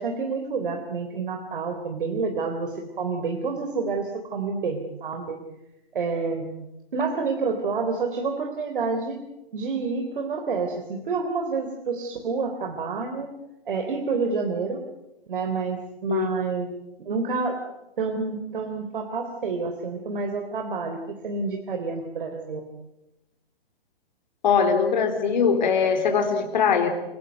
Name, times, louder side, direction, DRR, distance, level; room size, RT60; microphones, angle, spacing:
voice 1, 0.0-5.4 5.9-6.5 6.9-9.2 9.5-13.3 13.7-14.8 15.3-16.7 17.1-17.6 18.0-22.7, right 4 dB, 60° right, 4 dB, 3.7 m, -28 dB
voice 2, 24.4-26.9, left 6 dB, 50° left, 5 dB, 4.0 m, -21 dB
28.5 x 18.0 x 9.4 m, 0.98 s
figure-of-eight pair, 130°, 30 cm